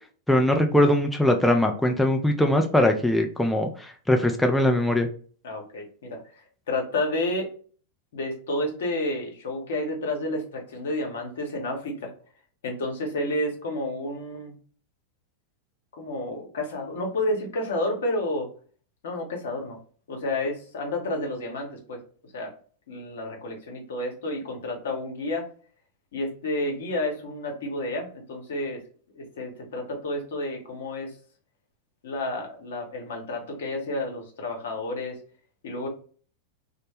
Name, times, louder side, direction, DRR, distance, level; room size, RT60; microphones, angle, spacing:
voice 1, 0.3-5.1, left 1 dB, 5° left, 3 dB, 0.4 m, -21 dB
voice 2, 5.4-7.5 8.1-12.1 12.6-14.5 16.0-18.5 19.0-19.8 20.1-22.0 22.3-22.6 22.9-25.5 26.1-28.8 29.1-31.1 32.0-35.2 35.6-35.9, left 1 dB, 70° left, 2 dB, 0.8 m, -30 dB
2.1 x 2.0 x 3.0 m, 0.42 s
hypercardioid pair, 100°, 0 cm